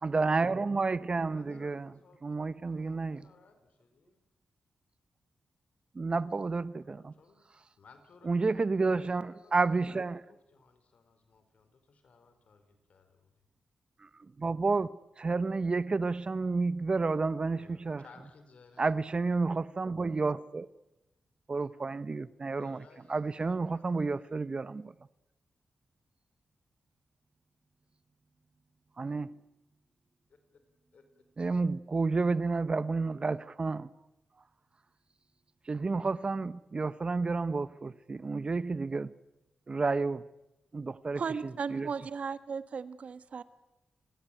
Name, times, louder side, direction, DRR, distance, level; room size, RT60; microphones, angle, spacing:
voice 1, 0.0-1.9 2.2-3.3 5.9-7.1 8.2-10.2 14.0-18.0 18.8-20.7 21.5-22.8 23.1-24.9 29.0-29.4 31.4-33.9 35.7-39.1 39.7-40.2 40.7-41.9, right 3 dB, 45° right, 0.9 m, -31 dB
voice 2, 1.3-4.2 6.8-7.4 7.8-9.6 10.1-13.3 17.5-19.0 22.5-24.5 30.3-30.6 30.9-31.1, left 4 dB, 65° left, 4.7 m, -60 dB
voice 3, 41.2-43.4, right 5 dB, 65° right, 1.4 m, -36 dB
29.5 x 16.0 x 9.2 m
supercardioid pair, 45°, 2 cm